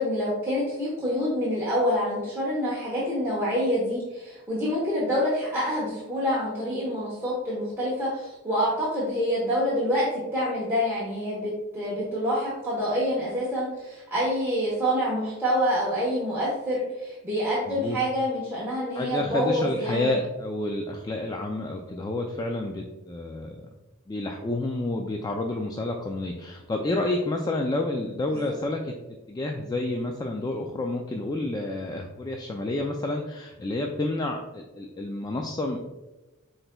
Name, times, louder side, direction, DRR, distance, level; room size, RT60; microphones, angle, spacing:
voice 1, 0.0-10.1 10.3-20.1 28.3-28.6, equal, 10° right, -7 dB, 1.1 m, -27 dB
voice 2, 17.7-18.0 18.9-23.6 24.1-35.9, left 2 dB, 20° left, 2 dB, 0.3 m, -29 dB
6.0 x 3.8 x 2.3 m, 1.1 s
head